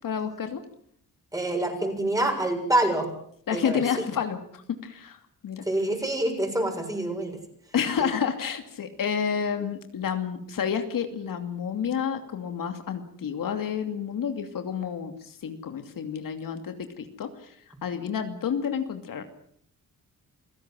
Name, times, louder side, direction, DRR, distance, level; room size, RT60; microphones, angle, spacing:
voice 1, 0.0-0.6 3.5-5.6 7.7-17.5 17.8-19.2, left 7 dB, 70° left, 7 dB, 2.7 m, -30 dB
voice 2, 1.3-3.1 3.5-3.8 5.6-7.4 8.0-8.1, right 1 dB, 10° right, 4 dB, 7.0 m, -26 dB
28.5 x 17.0 x 7.6 m, 0.64 s
cardioid pair, 110°, 34 cm